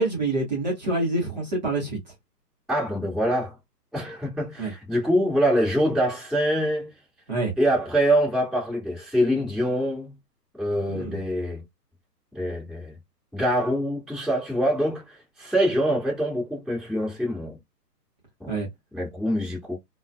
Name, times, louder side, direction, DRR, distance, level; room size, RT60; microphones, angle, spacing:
voice 1, 0.0-2.0 4.6-4.7 7.3-7.5 10.9-11.2 18.5-18.7, right 2 dB, 25° right, 0.9 m, -26 dB
voice 2, 2.7-3.5 3.9-6.9 7.6-10.1 10.6-11.6 12.3-12.9 13.3-17.6 18.4-18.6 18.9-19.8, equal, ahead, 0.9 m, -24 dB
2.3 x 2.3 x 2.4 m
hypercardioid pair, 165°, 49 cm